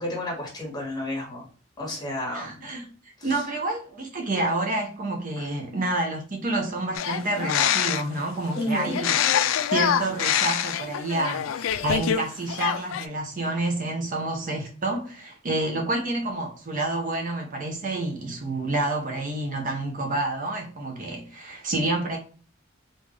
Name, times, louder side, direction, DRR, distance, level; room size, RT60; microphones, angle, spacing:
voice 1, 0.0-1.4 1.8-2.7 3.3-3.4 5.4-5.5 8.5-9.0, left 1 dB, 20° left, 1.6 m, -31 dB
voice 2, 2.3-9.2 9.7-22.2, right 2 dB, 45° right, 0.7 m, -29 dB
sound 1, 6.9-8.2 8.9-12.2 12.5-13.1, left 9 dB, 85° left, 0.3 m, -25 dB
3.6 x 2.6 x 3.2 m
head